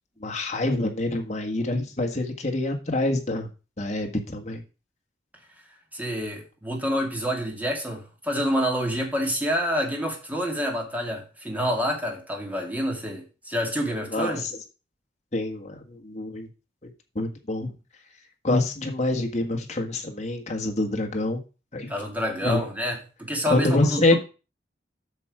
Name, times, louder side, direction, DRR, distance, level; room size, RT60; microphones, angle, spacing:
voice 1, 0.2-3.5 3.8-4.6 14.1-14.4 15.3-16.5 16.8-16.9 17.1-17.7 18.4-21.4 21.7-21.9 22.4-22.6 23.5-24.2, left 2 dB, 40° left, 2 dB, 1.6 m, -26 dB
voice 2, 5.9-14.5 21.9-24.2, equal, 10° right, 1 dB, 2.3 m, -28 dB
8.3 x 6.2 x 4.9 m, 0.32 s
head